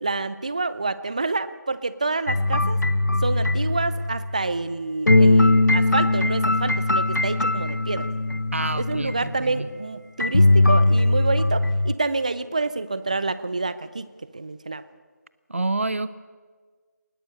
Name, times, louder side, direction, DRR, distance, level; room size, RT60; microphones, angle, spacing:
voice 1, 0.0-2.8 3.2-8.1 8.7-14.8, right 3 dB, 25° right, 15 dB, 0.5 m, -28 dB
sound 1, 2.3-4.5 5.1-9.4 10.2-11.9, left 2 dB, 75° left, 0.9 m, -20 dB
voice 2, 8.5-9.7 15.5-16.1, right 2 dB, 45° right, 15 dB, 1.0 m, -28 dB
21.0 x 19.5 x 6.8 m, 1.5 s
figure-of-eight pair, 165°, 10 cm